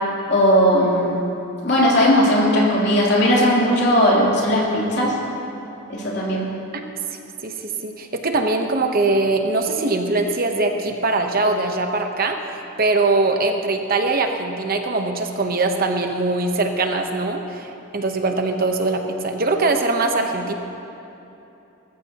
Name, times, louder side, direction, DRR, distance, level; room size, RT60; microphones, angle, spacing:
voice 1, 0.3-1.2 1.6-5.1 5.9-6.5, equal, 60° left, -5 dB, 3.2 m, -17 dB
voice 2, 7.4-12.4 12.8-20.5, right 3 dB, 45° right, 4 dB, 0.9 m, -22 dB
20.0 x 14.5 x 2.9 m, 2.9 s
head